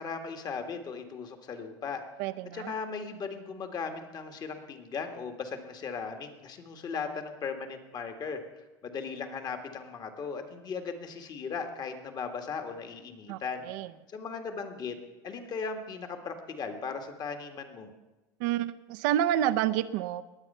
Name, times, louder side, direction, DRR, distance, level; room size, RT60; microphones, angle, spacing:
voice 1, 0.0-2.0 2.5-13.7 14.1-15.0 15.2-17.9, left 5 dB, 40° left, 6 dB, 1.8 m, -37 dB
voice 2, 2.2-2.7 13.3-13.4 13.6-13.9 18.4-20.2, right 11 dB, 80° right, 12 dB, 0.7 m, -28 dB
20.5 x 8.1 x 5.6 m, 1.1 s
supercardioid pair, 110°, 10 cm